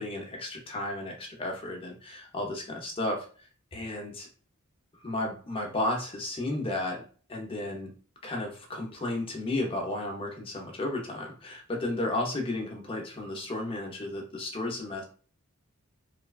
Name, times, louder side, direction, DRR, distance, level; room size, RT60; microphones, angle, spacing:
voice 1, 0.0-4.3 5.0-7.0 7.3-7.9 8.2-15.0, left 2 dB, 25° left, 1 dB, 0.6 m, -33 dB
3.1 x 2.2 x 2.3 m, 0.41 s
head